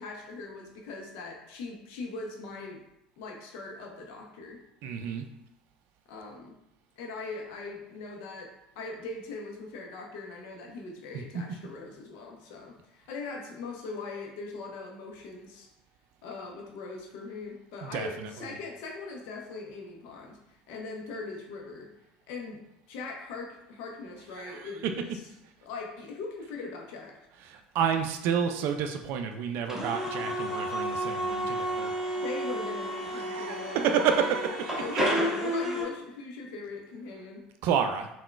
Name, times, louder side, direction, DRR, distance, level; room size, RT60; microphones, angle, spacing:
voice 1, 0.0-2.8 3.2-4.6 6.1-6.6 7.0-15.7 16.2-20.4 20.7-21.9 22.3-25.1 25.6-27.2 32.2-33.8 34.8-37.5, left 3 dB, 65° left, 1 dB, 0.6 m, -40 dB
voice 2, 4.8-5.3 11.3-11.4 17.8-18.3 24.4-24.9 27.5-31.9 33.1-35.0 37.6-38.1, right 7 dB, 55° right, 6 dB, 0.3 m, -30 dB
sound 1, 29.7-35.8, equal, 10° right, 0.8 m, -31 dB
3.6 x 2.2 x 2.3 m, 0.84 s
hypercardioid pair, 70°, 4 cm